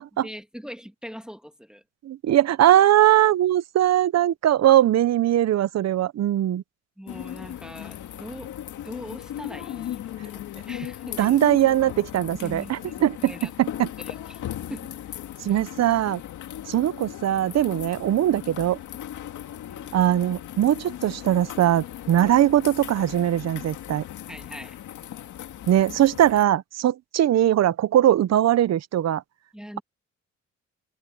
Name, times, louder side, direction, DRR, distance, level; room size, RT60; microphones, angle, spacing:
voice 1, 0.2-1.8 7.0-8.5 8.8-11.4 12.4-12.9 13.2-13.5 14.0-14.4 14.7-15.0 15.5-15.6 19.7-20.1 24.3-24.8 29.5-29.8, equal, ahead, 2.1 m, -41 dB
voice 2, 2.0-6.6 11.2-13.3 13.6-13.9 15.4-16.2 16.7-18.8 19.9-24.0 25.7-29.2, right 12 dB, 60° right, 0.8 m, -20 dB
sound 1, 7.1-26.4, left 11 dB, 80° left, 2.1 m, -37 dB
cardioid pair, 90°, 30 cm